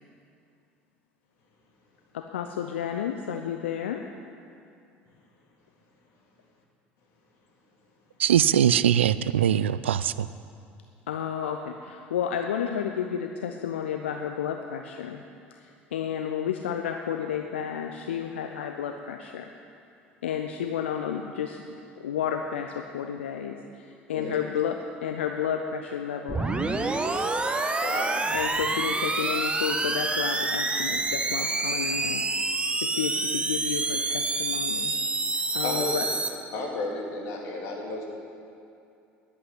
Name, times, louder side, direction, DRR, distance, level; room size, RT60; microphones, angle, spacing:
voice 1, 2.1-4.0 11.1-15.2 15.5-19.5 20.2-26.7 28.3-32.2 32.8-34.9 35.3-36.1, left 8 dB, 75° left, 5 dB, 0.6 m, -32 dB
voice 2, 8.2-10.3, right 9 dB, 80° right, 16 dB, 0.4 m, -22 dB
sound 1, 26.3-36.3, right 3 dB, 15° right, 1.2 m, -27 dB
voice 3, 27.8-28.3 35.6-36.0 36.5-38.0, left 2 dB, 60° left, -1 dB, 2.8 m, -33 dB
11.0 x 8.6 x 9.9 m, 2.6 s
figure-of-eight pair, 65°, 6 cm